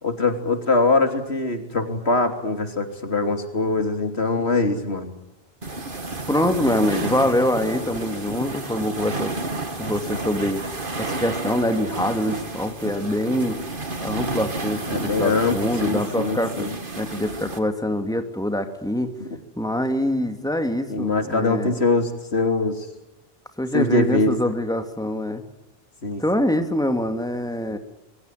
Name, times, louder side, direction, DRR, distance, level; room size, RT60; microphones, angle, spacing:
voice 1, 0.0-5.1 14.9-16.7 19.2-19.3 20.9-22.9 23.7-24.4 26.0-26.2, left 3 dB, 90° left, 6 dB, 3.6 m, -22 dB
sound 1, 5.6-17.6, right 2 dB, 55° right, 2.5 m, -31 dB
voice 2, 6.3-9.3 9.8-10.7 11.0-13.6 14.0-16.7 17.0-19.1 19.6-21.7 23.6-25.4 26.2-27.8, left 1 dB, 5° left, 6 dB, 2.7 m, -24 dB
27.0 x 23.0 x 9.3 m, 0.94 s
omnidirectional pair, 1.1 m